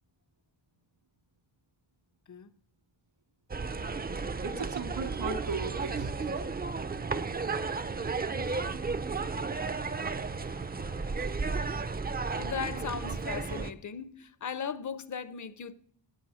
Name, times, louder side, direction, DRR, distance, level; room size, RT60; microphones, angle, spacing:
sound 1, 3.5-13.7, right 4 dB, 20° right, 0.4 m, -33 dB
voice 1, 4.1-6.1, right 4 dB, 85° right, 2.2 m, -37 dB
voice 2, 10.4-11.3 12.4-15.7, left 6 dB, 40° left, 0.6 m, -38 dB
12.0 x 8.4 x 7.5 m
wide cardioid pair, 165°, 46 cm